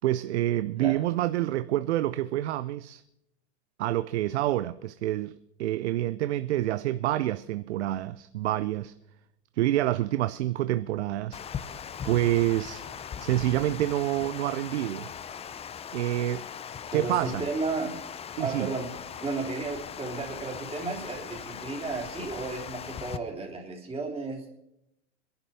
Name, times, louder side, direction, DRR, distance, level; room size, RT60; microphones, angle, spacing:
voice 1, 0.0-3.0 3.8-5.3 5.6-8.9 9.6-11.4 12.0-12.8 13.2-15.1 15.9-16.5 16.9-17.5 18.4-18.7, right 14 dB, 80° right, 0.6 m, -27 dB
Water, 11.3-23.2, left 8 dB, 20° left, 0.6 m, -40 dB
voice 2, 16.9-18.0 18.4-24.6, right 3 dB, 15° right, 3.3 m, -33 dB
22.5 x 11.5 x 4.2 m
hypercardioid pair, 110°, 33 cm